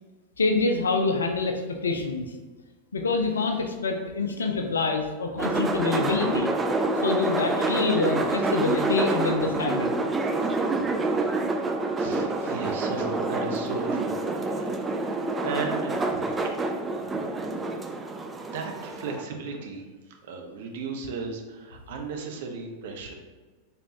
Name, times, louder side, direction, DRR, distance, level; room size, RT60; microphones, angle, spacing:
voice 1, 0.4-2.3 2.9-6.5 7.0-10.0, left 3 dB, 70° left, 4 dB, 0.4 m, -26 dB
sound 1, 5.4-19.2, right 2 dB, 15° right, 0.3 m, -27 dB
voice 2, 10.3-11.7 12.0-14.8 15.4-16.3 17.1-17.2 18.5-19.8 20.2-23.1, right 4 dB, 55° right, 3 dB, 0.6 m, -36 dB
4.1 x 3.4 x 2.8 m, 1.3 s
figure-of-eight pair, 90°, 0 cm